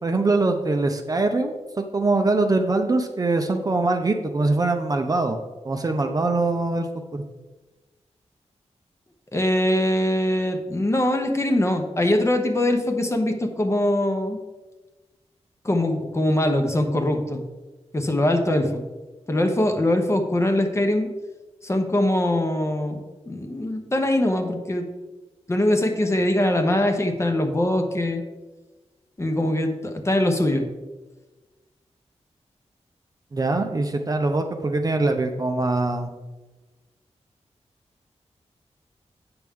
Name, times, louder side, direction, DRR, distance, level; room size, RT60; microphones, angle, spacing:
voice 1, 0.0-5.4 5.6-7.2 33.3-36.1, right 2 dB, 30° right, 5 dB, 0.6 m, -23 dB
voice 2, 9.3-14.4 15.6-17.5 17.9-18.8 19.3-21.1 21.6-24.9 25.5-28.2 29.2-30.7, left 1 dB, 25° left, 4 dB, 0.8 m, -22 dB
8.7 x 6.1 x 3.6 m, 1.2 s
wide cardioid pair, 150°, 12 cm